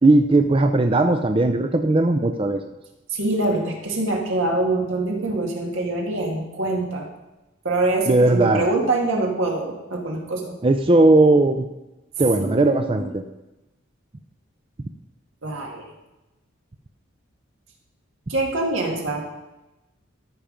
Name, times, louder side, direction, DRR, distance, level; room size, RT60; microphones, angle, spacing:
voice 1, 0.0-2.6 8.1-8.6 10.6-11.7 12.2-13.2, right 2 dB, 25° right, 6 dB, 0.5 m, -17 dB
voice 2, 3.1-7.1 7.6-10.5 12.4-13.1 15.4-15.9 18.3-19.2, right 2 dB, 80° right, 0 dB, 2.1 m, -24 dB
14.0 x 5.8 x 5.1 m, 1.0 s
head